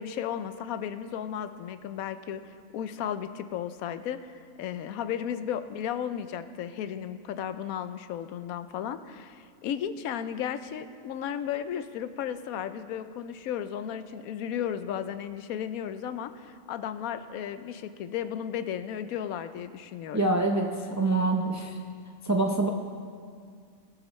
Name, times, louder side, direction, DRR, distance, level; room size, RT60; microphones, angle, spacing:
voice 1, 0.0-20.3, left 9 dB, 80° left, 11 dB, 1.0 m, -34 dB
voice 2, 20.1-21.8 22.2-22.7, right 2 dB, 25° right, 2 dB, 0.4 m, -25 dB
21.0 x 8.0 x 3.1 m, 2.1 s
omnidirectional pair, 1.5 m